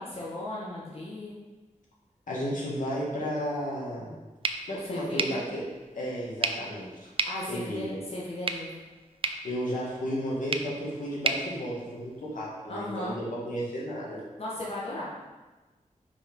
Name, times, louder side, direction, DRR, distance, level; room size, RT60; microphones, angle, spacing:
voice 1, 0.0-1.4 4.7-5.4 7.2-8.8 12.7-13.2 14.4-15.1, left 1 dB, 50° left, -6 dB, 1.4 m, -36 dB
voice 2, 2.3-4.2 4.7-5.6 6.0-6.9 7.5-8.0 9.4-14.2, equal, 80° left, -5 dB, 2.0 m, -33 dB
sound 1, 4.4-12.5, right 3 dB, 45° right, 0.5 m, -35 dB
5.3 x 4.9 x 5.3 m, 1.2 s
wide cardioid pair, 80°, 13 cm